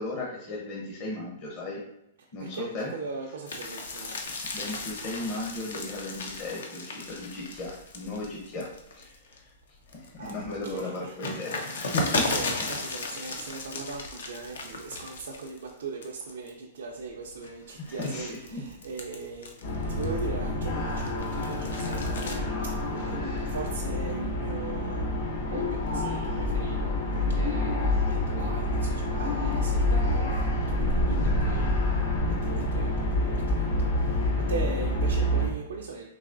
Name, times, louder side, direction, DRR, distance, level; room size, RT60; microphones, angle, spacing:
voice 1, 0.0-1.8 2.3-2.9 4.5-9.5 9.9-12.4 17.7-18.6, left 2 dB, 40° left, -4 dB, 0.8 m, -36 dB
voice 2, 2.4-4.3 10.2-11.1 11.9-19.6 19.9-25.2 25.5-36.1, right 4 dB, 90° right, -1 dB, 0.4 m, -40 dB
sound 1, 3.5-9.4 9.8-15.7 16.0-16.5 17.1-20.4 20.8-22.4, left 3 dB, 85° left, 0.6 m, -35 dB
sound 2, 19.6-35.5, left 1 dB, 65° left, 1.0 m, -27 dB
3.9 x 2.9 x 2.5 m, 0.82 s
hypercardioid pair, 140°, 0 cm